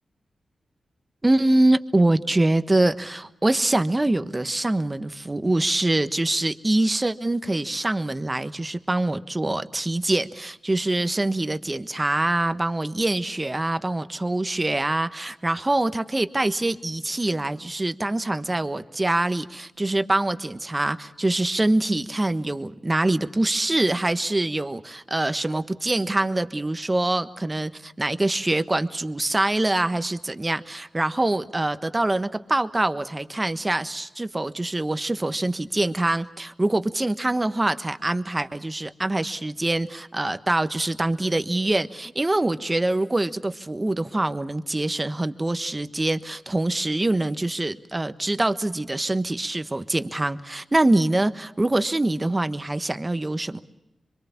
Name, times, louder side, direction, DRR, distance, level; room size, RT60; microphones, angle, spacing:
voice 1, 1.2-53.6, right 2 dB, 25° right, 11 dB, 1.3 m, -24 dB
25.5 x 23.0 x 7.2 m, 0.99 s
cardioid pair, 45°, 0 cm